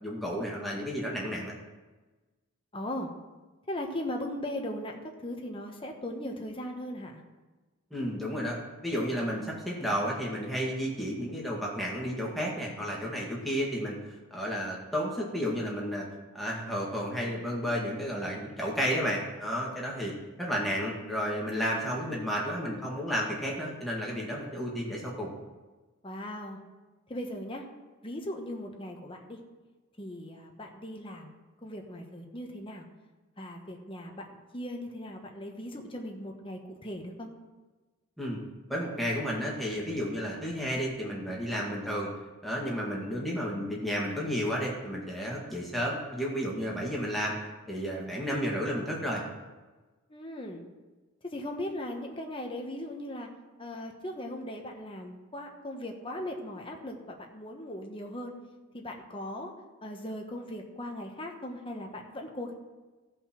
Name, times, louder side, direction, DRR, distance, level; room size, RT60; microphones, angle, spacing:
voice 1, 0.0-1.6 7.9-8.6 8.8-14.0 14.3-16.1 16.3-20.1 20.4-25.3 38.2-38.4 38.7-42.1 42.4-47.3 47.7-49.2, equal, ahead, -4 dB, 1.9 m, -32 dB
voice 2, 2.7-3.1 3.7-7.2 26.0-26.6 27.1-27.6 28.0-29.4 30.0-32.8 33.4-34.2 34.5-37.3 50.1-50.6 51.2-53.3 53.6-58.3 58.7-59.5 59.8-62.5, left 1 dB, 25° left, 2 dB, 1.2 m, -38 dB
15.5 x 5.4 x 6.0 m, 1.2 s
head